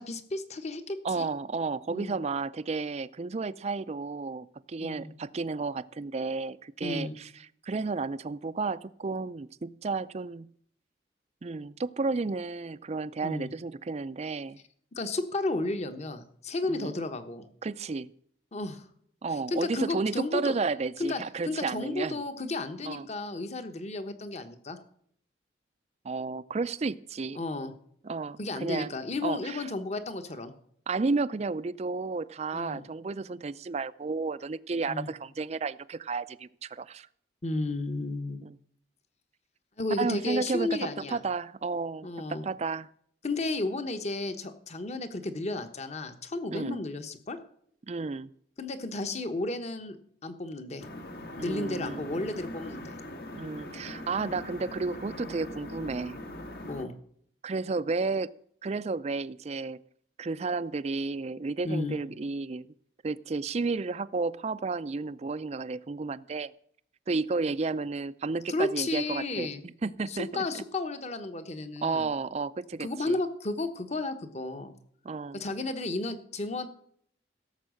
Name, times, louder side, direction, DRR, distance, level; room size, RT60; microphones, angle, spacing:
voice 1, 0.0-1.3 1.9-2.2 4.8-5.1 6.8-7.1 13.2-13.5 15.0-17.5 18.5-18.8 19.5-20.5 21.0-24.8 27.3-27.7 28.4-30.5 32.5-32.8 34.9-35.1 37.4-38.4 39.8-41.2 42.0-42.4 43.2-47.4 48.6-50.0 50.2-50.8 51.4-52.8 56.6-56.9 61.6-62.0 68.5-69.6 70.1-72.1 72.8-74.7 75.3-76.7, left 2 dB, 40° left, 9 dB, 1.1 m, -33 dB
voice 2, 1.0-7.3 7.6-10.5 11.4-14.6 16.7-16.9 17.6-18.1 19.2-22.2 22.8-23.1 26.0-27.4 28.0-28.9 29.2-29.7 30.9-37.1 38.4-38.6 40.0-42.9 46.5-46.8 47.9-48.3 51.4-52.3 53.4-56.2 57.4-58.3 58.6-59.8 60.2-62.7 63.0-66.5 67.1-70.5 71.8-73.2 75.0-75.4, right 4 dB, 35° right, 17 dB, 0.4 m, -32 dB
sound 1, 50.8-56.8, left 1 dB, 60° left, 1.6 m, -41 dB
16.5 x 7.4 x 6.3 m, 0.65 s
head